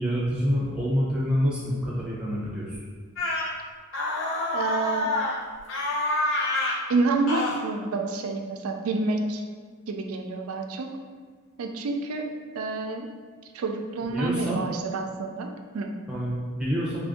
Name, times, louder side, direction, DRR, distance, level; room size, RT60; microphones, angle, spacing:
voice 1, 0.0-2.8 14.1-14.7 16.1-17.0, equal, 5° right, -8 dB, 0.7 m, -27 dB
sound 1, 3.2-3.5 3.9-5.4 5.7-6.8 7.3-7.6, left 2 dB, 60° left, 0.6 m, -27 dB
voice 2, 4.5-5.1 6.9-9.4 9.9-11.0 11.6-12.2 12.5-13.1 13.5-15.9, right 3 dB, 75° right, 4 dB, 0.4 m, -28 dB
3.4 x 2.5 x 3.6 m, 1.5 s
head